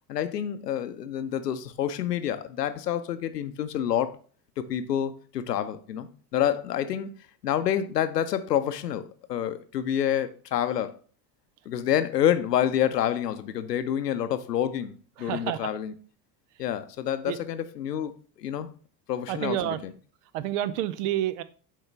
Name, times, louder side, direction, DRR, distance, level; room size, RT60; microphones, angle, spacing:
voice 1, 0.1-4.2 4.6-7.1 7.4-9.0 9.3-10.9 11.7-14.9 15.2-15.9 16.6-18.7 19.1-19.8, left 10 dB, 75° left, 0.7 m, -28 dB
voice 2, 15.2-15.8 17.2-17.4 19.3-19.8 20.3-21.4, right 13 dB, 50° right, 0.6 m, -29 dB
7.4 x 4.7 x 3.3 m
figure-of-eight pair, 65°, 49 cm